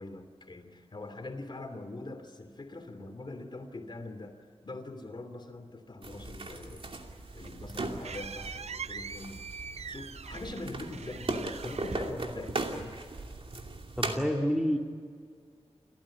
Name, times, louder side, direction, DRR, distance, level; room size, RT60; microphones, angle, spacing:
voice 1, 0.0-6.9 7.3-9.4 9.9-13.0, left 2 dB, 45° left, 6 dB, 2.9 m, -43 dB
sound 1, 6.0-14.2, right 2 dB, 55° right, 2.6 m, -38 dB
sound 2, 7.1-12.9, right 6 dB, 80° right, 0.6 m, -43 dB
voice 2, 14.0-14.8, equal, 5° right, 2 dB, 2.1 m, -28 dB
29.5 x 14.5 x 9.8 m, 2.1 s
wide cardioid pair, 90°, 11 cm